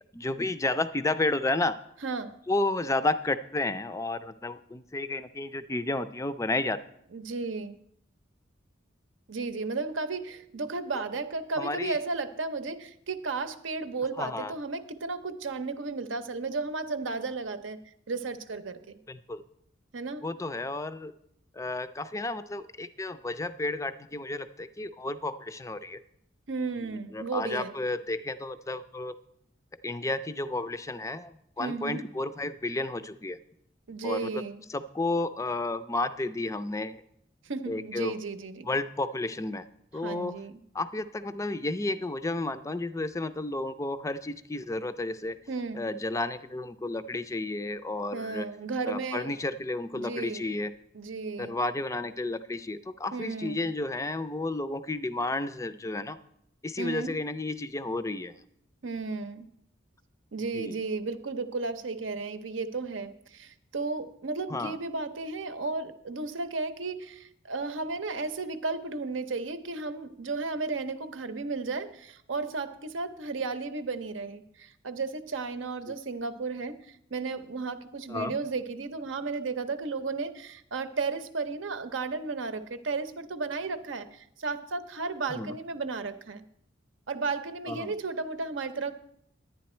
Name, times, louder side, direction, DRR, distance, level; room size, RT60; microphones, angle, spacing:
voice 1, 0.1-1.8 2.5-6.8 10.9-11.0 11.6-12.0 14.2-14.5 19.1-19.4 20.2-21.1 21.5-26.0 27.1-29.2 29.8-33.4 34.0-34.4 34.7-37.0 37.7-38.2 38.7-39.6 39.9-40.4 40.7-45.4 45.7-48.5 48.9-50.7 51.4-56.2 56.6-58.3 60.5-60.8 64.5-64.8 78.1-78.3 85.3-85.5 87.7-87.9, left 2 dB, 15° left, 13 dB, 0.4 m, -32 dB
voice 2, 2.0-2.3 7.1-7.8 9.3-17.8 18.1-19.0 19.9-20.2 26.5-27.7 31.6-32.1 33.9-34.6 37.4-38.7 40.0-40.5 45.5-45.8 48.1-49.4 49.9-50.5 50.9-51.6 53.1-53.7 56.8-57.1 58.8-59.5 60.3-86.4 87.1-88.9, right 4 dB, 75° right, 10 dB, 0.7 m, -34 dB
10.5 x 9.8 x 4.3 m, 0.72 s
head